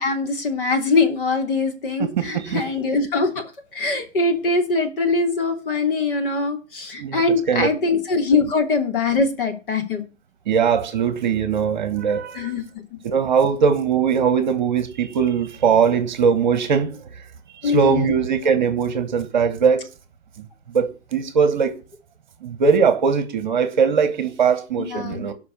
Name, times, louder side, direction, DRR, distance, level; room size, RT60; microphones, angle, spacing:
voice 1, 0.0-3.4 3.7-10.0 12.3-12.6 17.6-18.1 24.8-25.3, left 3 dB, 45° left, 3.0 m, -22 dB
voice 2, 2.2-2.6 7.0-7.2 7.5-7.7 10.5-12.5 13.0-16.9 17.6-19.8 20.7-21.7 22.4-25.3, right 6 dB, 35° right, 1.3 m, -20 dB
16.5 x 5.7 x 6.8 m
hypercardioid pair, 160°, 39 cm